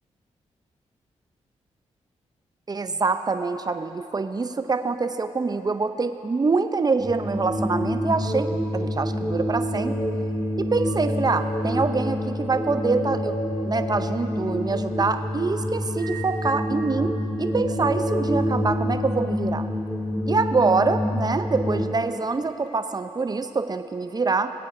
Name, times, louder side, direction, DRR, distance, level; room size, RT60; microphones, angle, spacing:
voice 1, 2.7-10.0 10.6-13.4 13.6-19.7 20.3-24.5, right 4 dB, 30° right, 9 dB, 0.6 m, -25 dB
sound 1, 7.0-21.8, equal, ahead, 1.9 m, -27 dB
22.0 x 8.2 x 2.7 m, 2.6 s
supercardioid pair, 50°, 13 cm